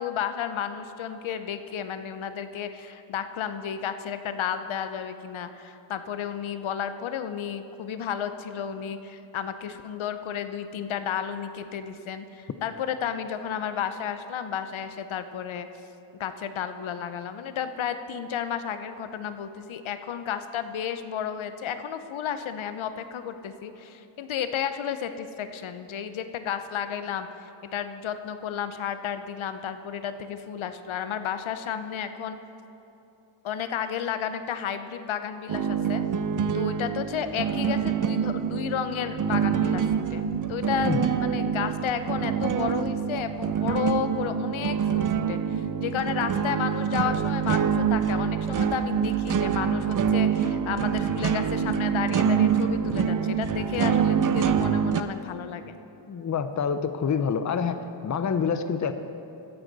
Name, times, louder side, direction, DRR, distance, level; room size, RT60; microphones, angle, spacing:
voice 1, 0.0-15.7 16.2-27.3 27.7-32.4 33.4-36.0 36.5-40.2 40.5-55.7, left 8 dB, 85° left, 10 dB, 0.6 m, -32 dB
sound 1, 35.5-55.0, right 7 dB, 45° right, 0.5 m, -26 dB
voice 2, 56.1-57.8 58.0-58.9, left 6 dB, 40° left, 10 dB, 0.6 m, -26 dB
14.0 x 9.8 x 3.9 m, 2.9 s
wide cardioid pair, 90°, 46 cm